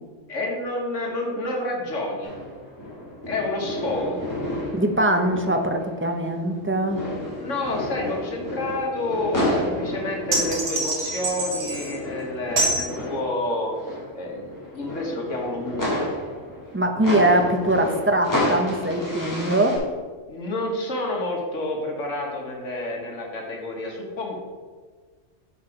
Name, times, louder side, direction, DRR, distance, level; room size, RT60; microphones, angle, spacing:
voice 1, 0.3-2.3 3.3-4.2 7.2-14.5 14.7-16.1 20.3-24.4, left 1 dB, 85° left, 0 dB, 1.6 m, -29 dB
sound 1, 2.2-6.6 6.9-19.8, left 1 dB, 15° left, 2.3 m, -31 dB
voice 2, 4.7-7.1 16.7-19.8, right 1 dB, 15° right, 4 dB, 0.4 m, -22 dB
sound 2, 10.3-12.0 12.6-12.9, right 2 dB, 80° right, 1.8 m, -25 dB
6.6 x 6.0 x 4.9 m, 1.5 s
omnidirectional pair, 1.2 m